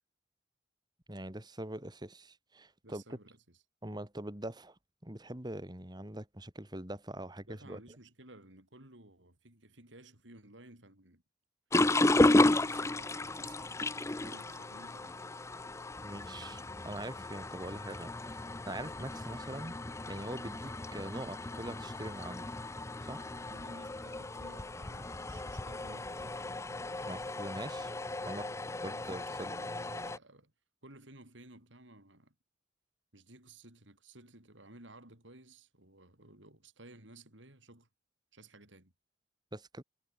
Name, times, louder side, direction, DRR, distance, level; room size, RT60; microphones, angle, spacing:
voice 1, 1.1-3.0 3.8-7.8 16.0-19.8 20.1-22.4 23.0-23.3 27.0-27.9 28.2-28.5 28.8-29.6 39.5-39.8, right 1 dB, 20° right, 2.4 m, -43 dB
voice 2, 2.8-3.6 7.5-11.2 11.9-13.9 14.2-15.2 23.3-26.5 28.8-29.1 29.4-30.5 30.8-32.3 33.1-37.9 38.3-38.9, right 2 dB, 80° right, 7.0 m, -56 dB
sound 1, 11.7-30.2, left 2 dB, 15° left, 0.6 m, -33 dB
head